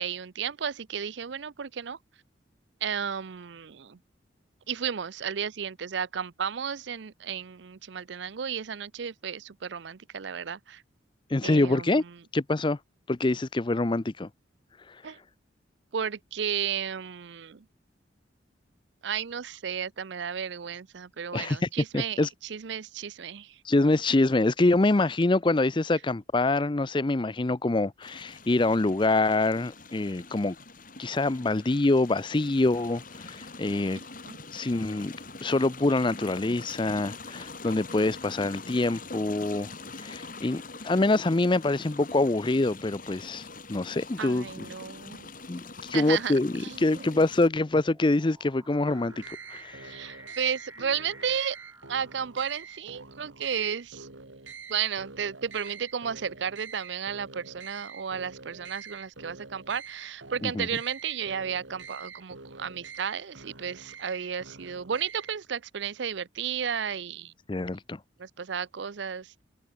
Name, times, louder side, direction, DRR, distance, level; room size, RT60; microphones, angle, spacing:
voice 1, 0.0-2.0 2.8-4.0 4.7-10.8 11.4-12.2 15.0-15.2 15.9-17.7 19.0-23.6 34.2-34.4 44.2-45.3 45.9-47.1 49.8-51.6 51.9-54.1 54.7-67.3 68.2-69.3, right 7 dB, 65° right, 0.5 m, -33 dB
voice 2, 11.3-12.0 12.3-12.8 13.1-14.3 21.3-21.6 21.9-22.3 23.7-30.6 31.0-34.0 34.5-35.1 35.4-39.7 40.0-44.7 45.5-49.9 60.4-60.7 67.5-68.0, left 2 dB, 25° left, 0.5 m, -25 dB
sound 1, 28.0-47.5, left 3 dB, 45° left, 7.0 m, -44 dB
sound 2, 43.3-43.7 44.6-52.8, right 2 dB, 15° right, 2.1 m, -53 dB
sound 3, 48.8-65.5, right 5 dB, 85° right, 4.5 m, -46 dB
head